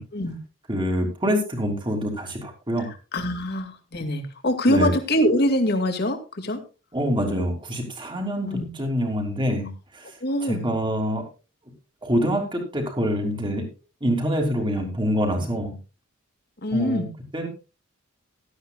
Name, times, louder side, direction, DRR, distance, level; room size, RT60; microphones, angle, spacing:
voice 1, 0.7-2.9 4.7-4.9 6.9-10.1 10.4-11.2 12.0-13.7 14.0-15.7 16.7-17.0 17.3-17.5, equal, 25° right, 3 dB, 3.1 m, -25 dB
voice 2, 2.8-6.6 8.5-8.7 10.2-10.7 16.6-17.1, left 1 dB, 50° left, 6 dB, 2.3 m, -24 dB
16.5 x 12.5 x 2.4 m, 0.31 s
head